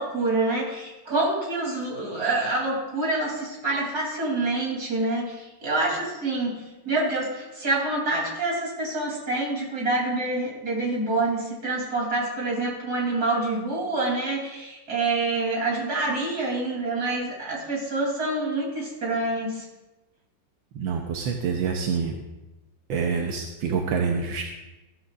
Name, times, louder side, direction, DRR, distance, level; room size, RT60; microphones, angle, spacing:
voice 1, 0.0-6.6 6.8-19.6, right 2 dB, 50° right, -3 dB, 4.0 m, -27 dB
voice 2, 20.7-22.1 22.9-24.4, right 6 dB, 80° right, 2 dB, 1.6 m, -26 dB
14.0 x 13.5 x 2.6 m, 1.0 s
omnidirectional pair, 2.1 m